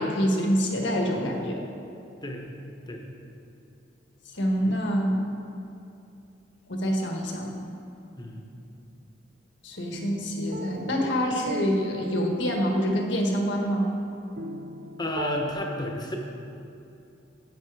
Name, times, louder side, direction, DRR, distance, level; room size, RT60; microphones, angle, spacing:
voice 1, 0.0-1.6 4.3-5.2 6.7-7.5 9.6-13.9, equal, 70° left, 1 dB, 1.4 m, -26 dB
sound 1, 9.9-15.5, right 2 dB, 55° right, 0.5 m, -39 dB
voice 2, 15.0-16.2, left 1 dB, 20° left, 1 dB, 1.0 m, -31 dB
9.9 x 8.5 x 4.8 m, 2.6 s
head